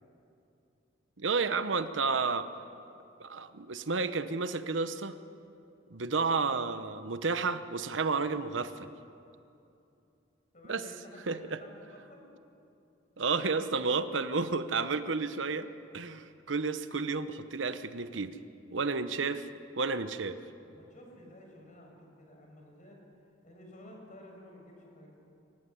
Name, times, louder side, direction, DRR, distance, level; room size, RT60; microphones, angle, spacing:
voice 1, 1.2-2.5 3.2-5.1 5.9-8.9 10.7-10.8 11.3-11.6 13.2-15.7 15.9-18.3 18.7-19.5 19.8-20.4, right 4 dB, 85° right, 11 dB, 1.0 m, -31 dB
voice 2, 10.5-12.3 20.6-23.0 23.4-25.1, left 1 dB, 45° left, 1 dB, 5.9 m, -52 dB
24.5 x 15.0 x 9.9 m, 2.7 s
head